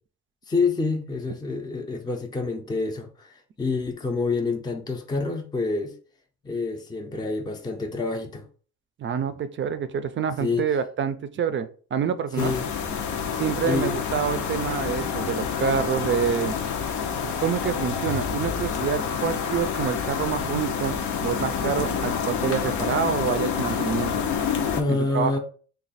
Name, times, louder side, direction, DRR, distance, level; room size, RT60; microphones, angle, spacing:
voice 1, 0.5-5.9 6.4-8.5 10.4-10.6 12.3-12.7 13.6-14.0 24.7-25.4, left 3 dB, 15° left, 0.5 m, -27 dB
voice 2, 9.0-12.6 13.4-16.6 17.2-24.2 24.9-25.4, right 7 dB, 40° right, 0.4 m, -27 dB
sound 1, 12.4-24.8, left 7 dB, 75° left, 0.6 m, -28 dB
3.1 x 2.3 x 4.0 m
cardioid pair, 90°, 30 cm